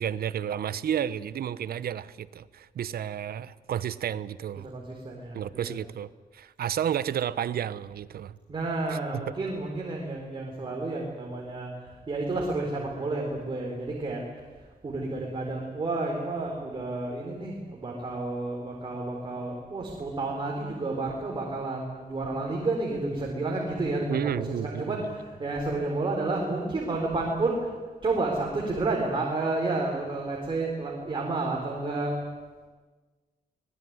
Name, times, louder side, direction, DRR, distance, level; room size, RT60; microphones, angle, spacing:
voice 1, 0.0-4.7 5.3-8.3 8.9-9.3 24.1-25.0, right 9 dB, 75° right, 16 dB, 0.9 m, -31 dB
voice 2, 4.6-5.7 8.5-14.2 14.5-27.7 28.0-32.2, right 2 dB, 30° right, -1 dB, 4.1 m, -31 dB
25.0 x 19.5 x 9.6 m, 1.4 s
wide cardioid pair, 150°, 16 cm